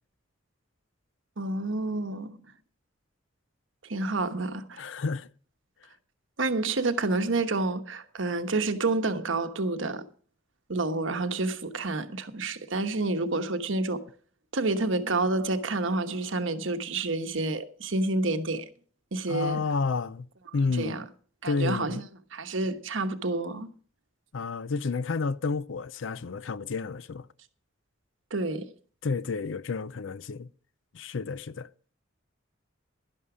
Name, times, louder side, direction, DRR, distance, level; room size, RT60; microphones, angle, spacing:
voice 1, 1.4-2.4 3.9-4.8 6.4-10.0 10.7-14.0 14.5-18.6 19.1-19.6 20.8-21.0 21.4-22.0 22.3-23.7 28.3-28.7, right 2 dB, 75° right, 1.2 m, -29 dB
voice 2, 4.8-5.3 19.3-21.1 21.4-22.0 24.3-27.3 29.0-30.5 30.9-31.7, left 4 dB, 70° left, 0.5 m, -30 dB
11.5 x 11.0 x 4.9 m
head